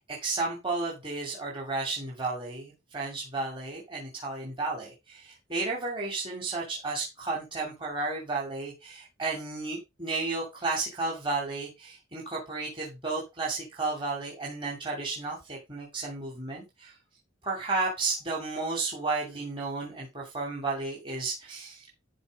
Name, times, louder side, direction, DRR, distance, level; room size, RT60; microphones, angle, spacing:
voice 1, 0.0-16.9 17.4-21.9, right 3 dB, 25° right, -4 dB, 2.5 m, -33 dB
12.0 x 4.3 x 5.1 m, 0.24 s
head